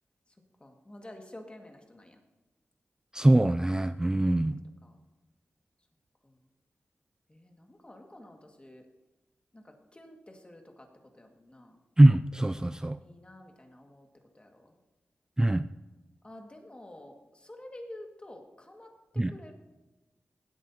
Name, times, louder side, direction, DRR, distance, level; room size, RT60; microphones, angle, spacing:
voice 1, 0.6-2.2 4.3-4.6 4.8-5.0 6.2-6.4 7.3-8.9 9.5-10.9 11.1-11.8 13.0-14.1 14.3-14.7 16.2-19.5, left 1 dB, 25° left, 3 dB, 2.0 m, -50 dB
voice 2, 3.1-4.6 12.0-13.0 15.4-15.6 19.2-19.3, right 1 dB, 15° right, 12 dB, 0.3 m, -22 dB
17.5 x 8.5 x 2.9 m, 1.1 s
cardioid pair, 65°, 5 cm